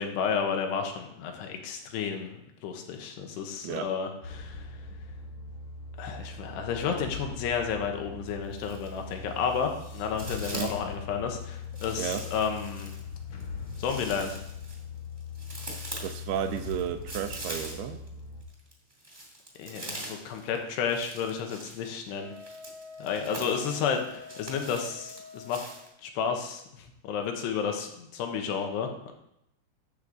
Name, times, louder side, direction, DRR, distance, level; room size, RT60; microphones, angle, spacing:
voice 1, 0.0-4.8 6.0-12.9 13.8-14.4 19.6-22.3 23.0-25.6 26.0-29.1, left 6 dB, 90° left, 4 dB, 3.2 m, -32 dB
sound 1, 4.2-18.4, left 4 dB, 65° left, 1.9 m, -41 dB
sound 2, 8.3-9.1 9.4-10.9 11.7-18.1 18.4-25.9, right 1 dB, 25° right, 1.1 m, -43 dB
voice 2, 16.0-18.0, right 10 dB, 80° right, 9 dB, 2.6 m, -32 dB
Wind instrument woodwind instrument, 22.2-25.8, left 5 dB, 65° right, 1.9 m, -47 dB
12.0 x 7.7 x 4.0 m, 0.81 s
omnidirectional pair, 4.7 m